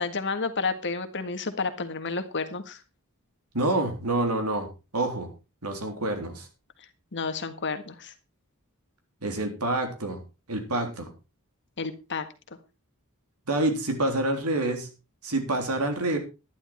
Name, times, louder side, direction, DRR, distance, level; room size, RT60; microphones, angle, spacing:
voice 1, 0.0-2.8 7.1-8.1 11.8-12.3, left 4 dB, 55° left, 9 dB, 1.7 m, -31 dB
voice 2, 3.5-4.7 4.9-5.3 5.6-6.5 9.2-10.2 10.5-11.1 13.5-14.9 15.2-16.2, right 2 dB, 85° right, 5 dB, 3.5 m, -27 dB
11.5 x 11.0 x 4.5 m, 0.30 s
head